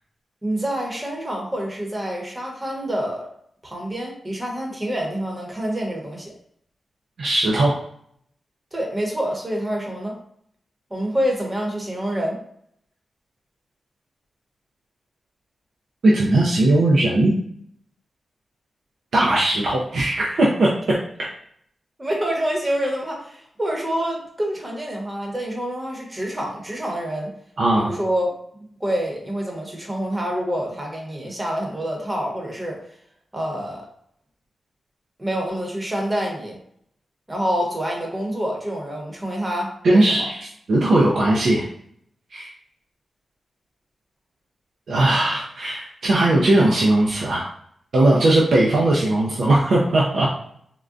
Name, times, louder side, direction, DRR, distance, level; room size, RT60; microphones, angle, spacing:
voice 1, 0.4-3.3 3.6-6.3 8.7-10.2 10.9-12.4 22.0-27.3 27.7-32.8 33.3-33.9 35.2-36.6 37.3-40.3, equal, 20° right, -1 dB, 0.9 m, -27 dB
voice 2, 7.2-7.8 16.0-17.3 19.1-21.0 27.6-27.9 39.8-41.7 42.3-42.5 44.9-47.5 47.9-50.3, right 1 dB, 75° right, -4 dB, 0.5 m, -18 dB
3.6 x 2.2 x 2.5 m, 0.67 s
wide cardioid pair, 90°, 0 cm